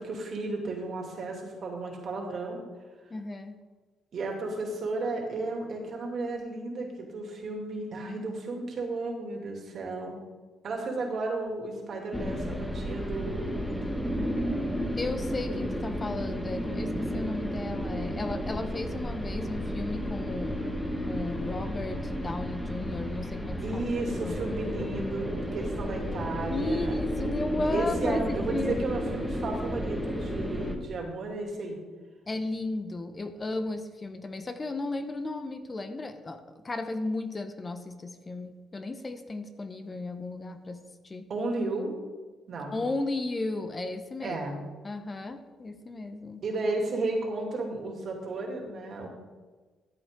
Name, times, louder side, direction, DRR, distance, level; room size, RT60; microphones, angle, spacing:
voice 1, 0.0-2.6 4.1-10.2 10.6-13.5 23.6-26.9 27.7-31.8 41.3-41.9 42.5-42.8 44.2-44.6 46.4-49.1, right 2 dB, 55° right, 1 dB, 2.7 m, -33 dB
voice 2, 3.1-3.6 14.9-20.6 21.1-24.5 26.5-29.0 32.3-41.3 42.7-44.4 44.8-46.4, left 2 dB, 30° left, 8 dB, 0.9 m, -35 dB
sound 1, 12.1-30.8, equal, 5° left, 1.5 m, -32 dB
13.5 x 8.1 x 3.8 m, 1.3 s
cardioid pair, 90°, 0 cm